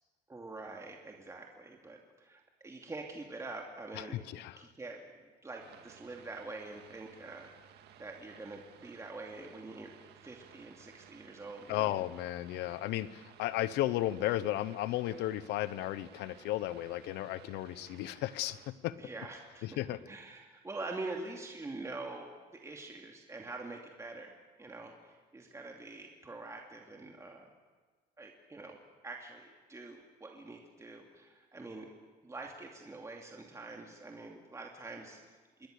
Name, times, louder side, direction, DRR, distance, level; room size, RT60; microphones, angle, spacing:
voice 1, 0.3-4.2 4.6-7.5 8.0-9.9 10.2-12.0 19.0-27.5 28.2-28.8 29.0-31.9 32.2-35.7, right 3 dB, 15° right, 1 dB, 2.5 m, -45 dB
voice 2, 3.9-4.6 11.7-19.0 19.6-20.0, left 15 dB, 85° left, 16 dB, 1.0 m, -34 dB
sound 1, 5.6-18.7, right 9 dB, 75° right, 1.9 m, -58 dB
27.5 x 21.0 x 6.7 m, 1.4 s
cardioid pair, 110°, 17 cm